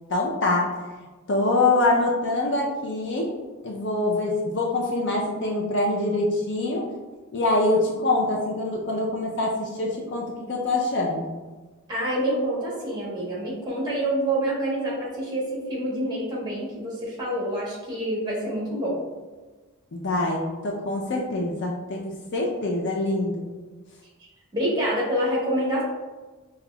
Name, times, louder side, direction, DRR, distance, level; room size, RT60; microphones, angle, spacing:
voice 1, 0.1-0.7 1.3-3.3 3.6-6.9 7.3-11.4 19.9-23.5, left 2 dB, 55° left, -1 dB, 0.5 m, -25 dB
voice 2, 11.9-19.0 24.5-25.8, right 1 dB, 20° right, -5 dB, 1.1 m, -27 dB
5.8 x 2.3 x 2.2 m, 1.3 s
head